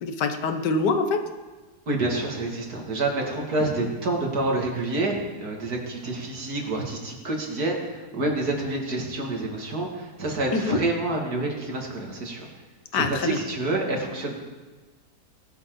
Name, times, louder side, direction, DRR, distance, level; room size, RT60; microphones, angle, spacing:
voice 1, 0.0-1.2 10.5-10.8 12.9-13.4, left 4 dB, 90° left, 7 dB, 1.7 m, -25 dB
voice 2, 1.9-12.4 12.9-14.4, right 2 dB, 65° right, 0 dB, 2.8 m, -28 dB
19.5 x 12.0 x 3.9 m, 1.3 s
omnidirectional pair, 1.8 m